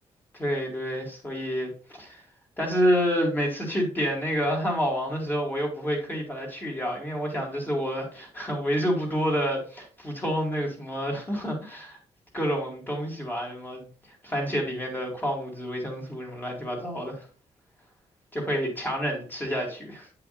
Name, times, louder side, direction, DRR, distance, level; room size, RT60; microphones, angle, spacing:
voice 1, 0.3-2.2 2.6-12.0 12.3-13.9 14.2-17.3 18.3-20.1, equal, 15° left, -1 dB, 2.4 m, -28 dB
8.9 x 5.6 x 2.6 m, 0.41 s
wide cardioid pair, 145°, 12 cm